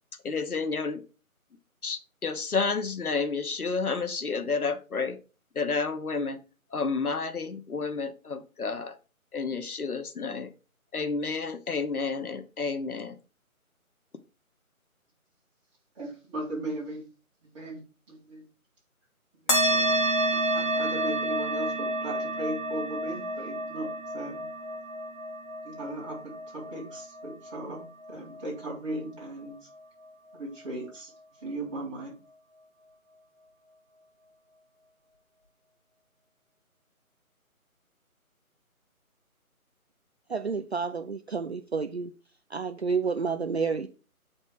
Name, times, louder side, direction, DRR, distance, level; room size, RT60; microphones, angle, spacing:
voice 1, 0.2-1.0 1.8-5.2 5.6-6.4 6.7-8.9 9.3-10.5 10.9-13.1, left 4 dB, 80° left, 1.2 m, -30 dB
voice 2, 16.0-17.0 17.5-17.8 18.1-18.4 19.4-20.0 20.3-23.9 24.1-24.5 25.6-27.8 28.1-29.6 30.3-31.1 31.4-32.1, right 1 dB, 20° right, 3.7 m, -37 dB
sound 1, 19.5-28.4, right 1 dB, 35° left, 2.1 m, -29 dB
voice 3, 40.3-42.1 42.5-43.9, right 5 dB, 50° right, 0.5 m, -30 dB
7.8 x 4.3 x 4.9 m
figure-of-eight pair, 165°, 43 cm